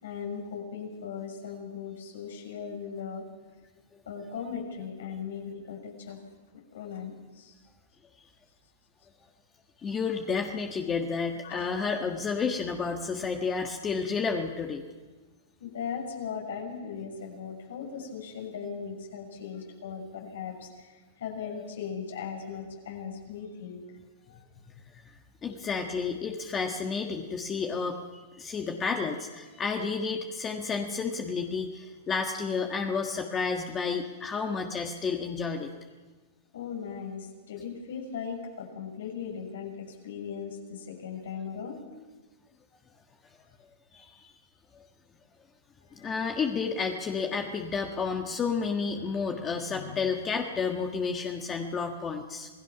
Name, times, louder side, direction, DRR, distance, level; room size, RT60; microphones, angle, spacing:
voice 1, 0.0-3.2 4.1-6.2 6.7-7.5 11.4-11.7 15.6-23.8 24.3-24.4 36.5-41.8 45.9-46.1 48.9-50.0, left 6 dB, 75° left, 1 dB, 6.7 m, -38 dB
voice 2, 9.8-14.8 21.5-21.7 25.4-28.0 28.3-35.7 43.9-44.3 44.7-44.8 45.9-52.5, left 5 dB, 20° left, 3 dB, 1.5 m, -31 dB
27.0 x 18.5 x 6.1 m, 1.3 s
hypercardioid pair, 145°, 0 cm